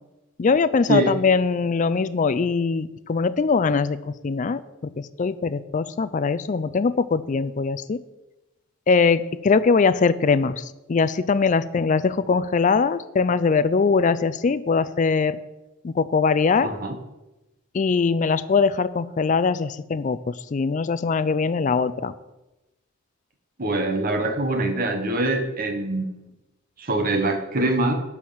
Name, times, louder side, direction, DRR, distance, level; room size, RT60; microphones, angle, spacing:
voice 1, 0.4-4.6 5.0-8.0 8.9-10.6 10.9-15.4 15.8-16.7 17.7-22.1, left 5 dB, 40° left, 15 dB, 0.4 m, -21 dB
voice 2, 16.6-17.0 23.6-26.3 26.8-27.9, right 2 dB, 45° right, 5 dB, 1.3 m, -24 dB
11.5 x 4.8 x 7.1 m, 0.99 s
head